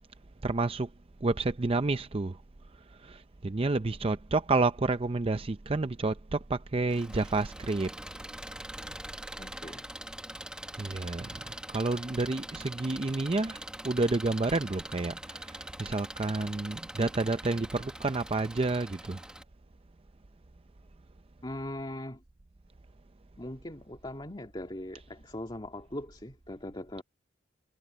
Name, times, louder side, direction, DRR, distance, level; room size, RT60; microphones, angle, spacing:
voice 1, 0.4-0.9 1.2-2.4 3.0-7.9 10.8-19.2, right 3 dB, 30° right, 0.5 m, -30 dB
Engine, 6.9-19.4, right 1 dB, 5° right, 1.0 m, -43 dB
voice 2, 9.4-9.9 21.4-22.2 23.4-27.0, left 1 dB, 25° left, 2.0 m, -40 dB
head